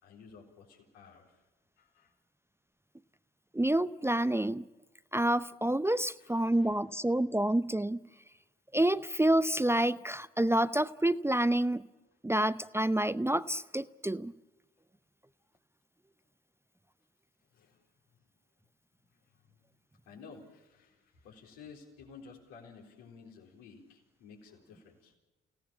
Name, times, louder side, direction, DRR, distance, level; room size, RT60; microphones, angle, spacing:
voice 1, 0.0-1.4 1.8-2.1 5.9-6.8 17.5-17.8 19.4-19.6 20.1-25.1, left 5 dB, 80° left, 1 dB, 4.1 m, -54 dB
voice 2, 3.5-4.7 5.1-8.0 8.7-11.9 12.2-14.3, right 1 dB, 10° right, 15 dB, 0.7 m, -28 dB
30.0 x 17.5 x 7.2 m, 1.1 s
hypercardioid pair, 40°, 29 cm